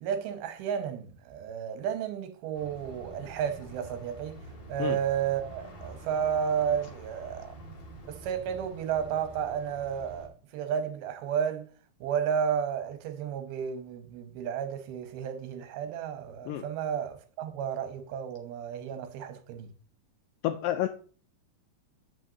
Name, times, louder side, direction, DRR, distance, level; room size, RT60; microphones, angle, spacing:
voice 1, 0.0-7.6 8.0-11.7 12.0-19.7, right 8 dB, 80° right, 2.6 m, -32 dB
sound 1, 2.5-10.3, right 1 dB, 40° left, 1.7 m, -47 dB
voice 2, 20.4-20.9, left 12 dB, 85° left, 2.0 m, -29 dB
7.6 x 7.5 x 2.7 m
omnidirectional pair, 4.5 m